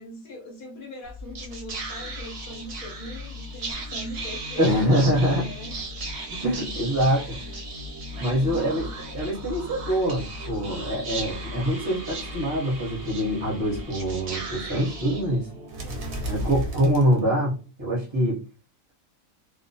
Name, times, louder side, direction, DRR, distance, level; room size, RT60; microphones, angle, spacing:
voice 1, 0.0-5.7 7.1-7.6 8.2-8.9 15.8-16.4, left 1 dB, 50° left, 0.6 m, -41 dB
Whispering, 1.0-17.6, right 1 dB, 60° right, 0.8 m, -35 dB
voice 2, 4.6-5.4 6.3-7.2 8.2-8.9 9.1-15.5 16.3-18.4, equal, 25° right, 0.7 m, -24 dB
2.3 x 2.1 x 2.6 m
omnidirectional pair, 1.5 m